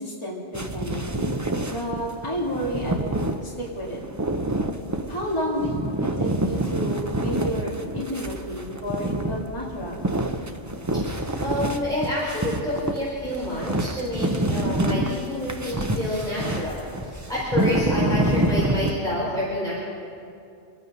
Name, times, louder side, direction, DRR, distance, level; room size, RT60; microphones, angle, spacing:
voice 1, 0.0-1.4 1.6-4.0 5.1-10.1, equal, 25° left, -5 dB, 2.5 m, -31 dB
sound 1, 0.5-18.9, right 1 dB, 20° right, 0.7 m, -27 dB
voice 2, 10.9-19.7, left 1 dB, 5° left, -8 dB, 3.9 m, -28 dB
26.5 x 9.3 x 5.4 m, 2.5 s
omnidirectional pair, 1.1 m